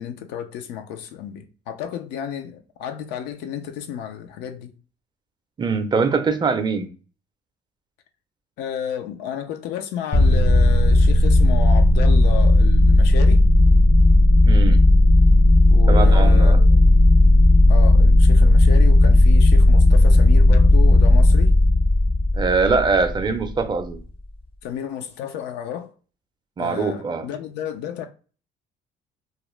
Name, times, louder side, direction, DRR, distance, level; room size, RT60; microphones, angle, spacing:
voice 1, 0.0-4.8 8.6-13.5 15.7-16.8 17.7-21.6 24.6-25.9 26.6-28.1, left 9 dB, 90° left, 0.4 m, -32 dB
voice 2, 5.6-6.9 14.4-14.8 15.9-16.6 22.3-24.0 26.6-27.3, right 4 dB, 25° right, 0.4 m, -22 dB
sound 1, 10.1-23.4, left 1 dB, 35° left, 0.5 m, -14 dB
2.3 x 2.0 x 3.0 m
cardioid pair, 110°, 17 cm